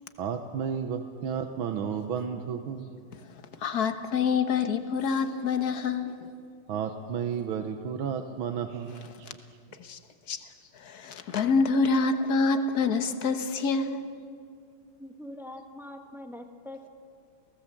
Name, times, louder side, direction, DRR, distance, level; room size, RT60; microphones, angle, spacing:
voice 1, 0.2-2.9 6.7-9.1, right 7 dB, 75° right, 7 dB, 1.7 m, -32 dB
voice 2, 3.6-6.3 9.8-10.0 10.3-10.4 10.7-14.0, left 4 dB, 50° left, 8 dB, 1.5 m, -26 dB
voice 3, 15.0-16.9, left 1 dB, ahead, 5 dB, 0.8 m, -43 dB
29.0 x 17.5 x 7.5 m, 2.3 s
omnidirectional pair, 2.4 m